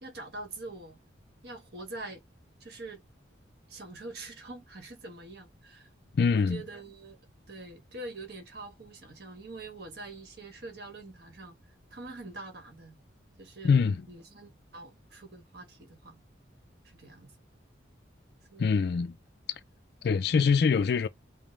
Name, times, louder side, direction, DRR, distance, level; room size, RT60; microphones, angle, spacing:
voice 1, 0.0-1.0 1.4-2.2 2.6-3.0 3.7-5.9 6.3-7.2 7.5-11.6 11.9-13.0 13.4-16.2 16.8-17.3 18.5-18.9, right 2 dB, 55° right, 1.3 m, -44 dB
voice 2, 6.1-6.6 13.6-14.0 18.6-19.1 20.0-21.1, left 5 dB, 55° left, 0.3 m, -24 dB
5.2 x 2.1 x 3.1 m
head